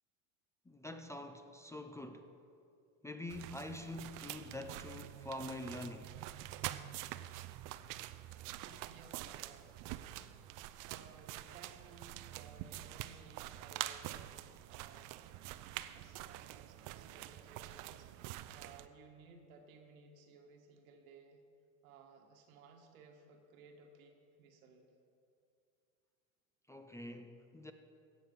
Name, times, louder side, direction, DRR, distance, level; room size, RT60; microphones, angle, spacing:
voice 1, 0.7-2.3 3.0-6.2 26.7-27.7, left 1 dB, 5° left, 0.5 m, -46 dB
sound 1, 3.3-18.9, right 14 dB, 50° right, 0.6 m, -46 dB
voice 2, 8.5-9.7 10.0-10.3 10.8-14.2 14.7-15.2 15.9-21.4 21.8-24.9, right 4 dB, 85° right, 1.7 m, -59 dB
16.5 x 6.5 x 5.6 m
supercardioid pair, 100°, 41 cm